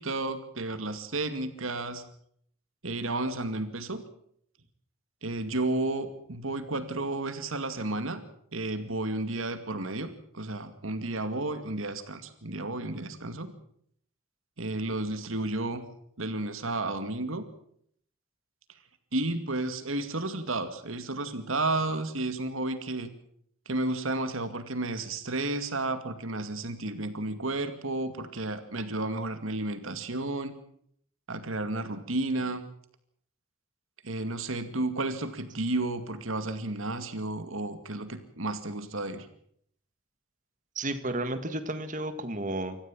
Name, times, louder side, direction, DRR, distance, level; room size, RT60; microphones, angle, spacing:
voice 1, 0.0-2.0 2.8-4.0 5.2-8.2 8.5-13.5 14.6-15.8 16.2-17.4 19.1-23.1 23.7-30.5 31.3-32.6 34.0-39.3, right 2 dB, 80° right, 9 dB, 2.3 m, -32 dB
voice 2, 40.8-42.8, right 2 dB, 40° right, 9 dB, 1.8 m, -32 dB
26.5 x 14.5 x 7.5 m, 0.67 s
head